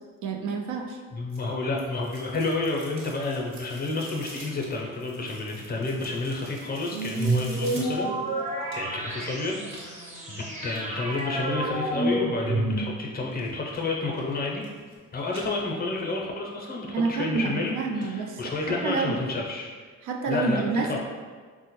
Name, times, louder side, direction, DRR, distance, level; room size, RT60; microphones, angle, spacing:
voice 1, 0.2-1.0 16.9-18.4 18.7-19.2 20.0-21.0, right 4 dB, 80° right, 2 dB, 0.5 m, -28 dB
voice 2, 1.1-8.1 8.7-14.7 15.1-19.7 20.3-21.0, left 3 dB, 30° left, -1 dB, 0.6 m, -30 dB
sound 1, 1.3-9.1 9.7-11.4 13.3-13.8 14.1-15.0 15.2-16.1 16.5-16.6 17.2-17.3 17.6-17.7 18.0-18.1 18.5-18.6, right 2 dB, 60° right, 0.9 m, -47 dB
sound 2, 6.9-13.2, right 1 dB, 25° right, 0.7 m, -29 dB
3.4 x 2.1 x 3.0 m, 1.5 s
cardioid pair, 90°, 30 cm